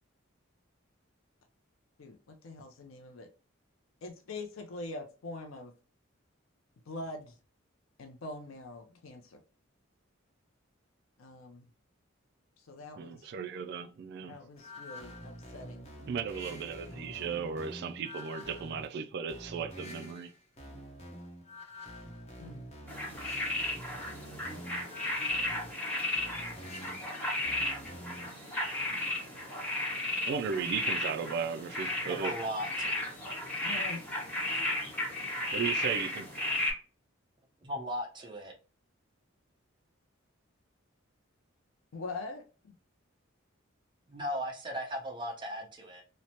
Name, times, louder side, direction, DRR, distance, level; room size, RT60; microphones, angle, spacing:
voice 1, 2.0-3.3 4.0-5.7 6.9-7.3 8.0-9.4 11.2-11.7 12.6-13.3 14.2-15.9 16.9-17.4 22.4-22.6 33.6-34.0 41.9-42.7, left 2 dB, 85° left, 0.5 m, -44 dB
voice 2, 13.0-14.4 16.1-20.3 30.2-32.4 35.5-36.3, right 6 dB, 55° right, 0.3 m, -35 dB
sound 1, 14.6-28.4, equal, 30° left, 0.8 m, -47 dB
sound 2, 22.9-36.7, left 1 dB, 5° left, 0.9 m, -34 dB
voice 3, 32.0-32.9 37.6-38.5 44.1-46.0, equal, 25° right, 0.6 m, -37 dB
3.0 x 2.0 x 2.7 m
head